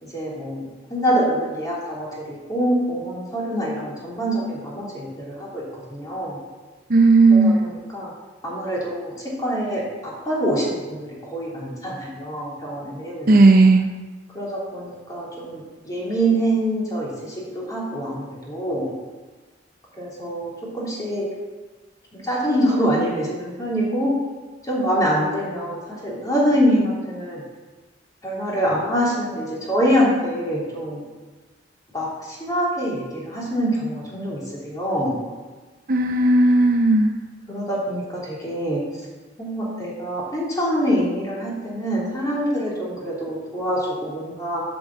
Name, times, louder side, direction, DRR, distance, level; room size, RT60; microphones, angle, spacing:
voice 1, 0.0-6.4 7.3-8.1 8.4-13.4 14.3-19.0 20.0-21.2 22.1-24.1 24.6-27.4 28.2-31.0 31.9-35.2 37.5-38.8 39.4-44.6, equal, 20° left, -6 dB, 3.1 m, -25 dB
voice 2, 6.9-7.6 13.3-13.9 35.9-37.1, right 2 dB, 50° right, 5 dB, 0.6 m, -14 dB
7.9 x 6.3 x 7.2 m, 1.3 s
head